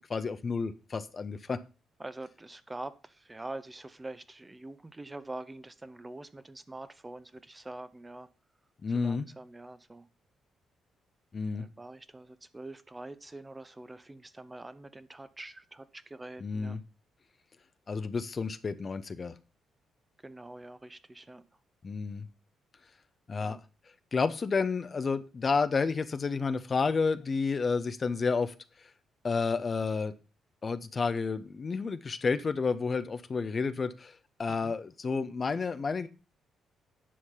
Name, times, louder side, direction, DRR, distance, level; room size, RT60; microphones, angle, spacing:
voice 1, 0.1-1.6 8.8-9.3 11.3-11.7 16.4-16.8 17.9-19.3 21.8-22.2 23.3-23.6 24.1-28.5 29.2-30.1 30.6-36.1, left 4 dB, 40° left, 0.9 m, -30 dB
voice 2, 2.0-8.3 8.9-10.1 11.5-16.8 20.2-21.4 23.4-23.6 34.5-34.7, right 2 dB, 20° right, 1.0 m, -45 dB
10.0 x 6.3 x 5.7 m
hypercardioid pair, 40°, 0 cm